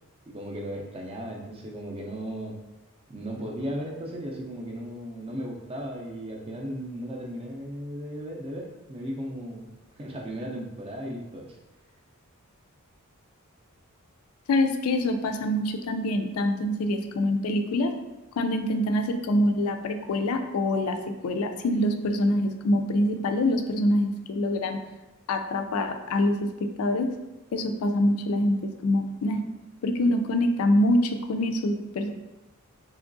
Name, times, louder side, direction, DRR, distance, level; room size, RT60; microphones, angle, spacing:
voice 1, 0.3-2.5 3.1-9.7 10.0-11.6, equal, 25° right, -1 dB, 0.5 m, -36 dB
voice 2, 14.5-17.9 18.4-24.8 25.3-26.5 26.8-27.1 27.5-29.4 29.8-32.1, left 1 dB, 75° left, 7 dB, 0.4 m, -25 dB
3.5 x 3.0 x 2.5 m, 1.0 s
head